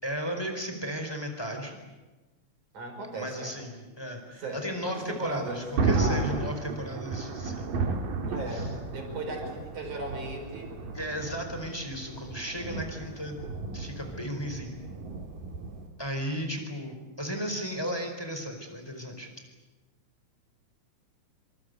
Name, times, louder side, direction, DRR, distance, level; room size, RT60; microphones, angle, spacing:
voice 1, 0.0-1.9 3.1-7.7 8.5-8.7 10.9-13.4 13.7-14.8 16.0-19.3, equal, 5° left, 4 dB, 4.3 m, -35 dB
voice 2, 2.7-3.5 4.4-5.6 5.9-6.4 8.3-10.7, right 2 dB, 65° right, 4 dB, 6.4 m, -37 dB
Thunder, 5.2-15.9, right 3 dB, 85° right, 4.3 m, -33 dB
26.5 x 26.0 x 8.2 m, 1.2 s
omnidirectional pair, 3.8 m